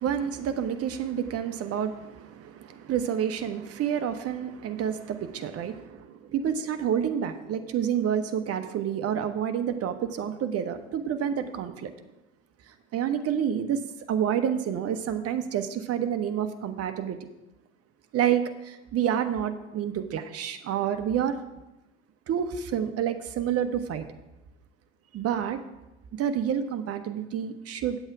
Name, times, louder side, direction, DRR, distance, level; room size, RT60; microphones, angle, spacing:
voice 1, 0.0-11.9 12.7-17.2 18.1-21.4 22.3-24.1 25.1-25.6 26.1-28.0, right 9 dB, 45° right, 8 dB, 1.0 m, -29 dB
9.0 x 7.9 x 4.7 m, 0.98 s
hypercardioid pair, 65°, 35 cm